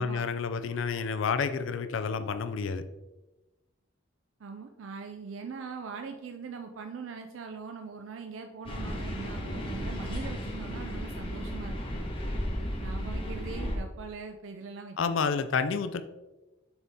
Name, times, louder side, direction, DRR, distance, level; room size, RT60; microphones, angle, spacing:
voice 1, 0.0-2.8 15.0-16.0, left 5 dB, 70° left, 10 dB, 0.4 m, -29 dB
voice 2, 4.4-12.0 12.8-15.3, right 5 dB, 75° right, 5 dB, 0.5 m, -42 dB
sound 1, 8.6-13.8, equal, 30° left, 1.1 m, -34 dB
6.9 x 4.1 x 3.6 m, 1.1 s
head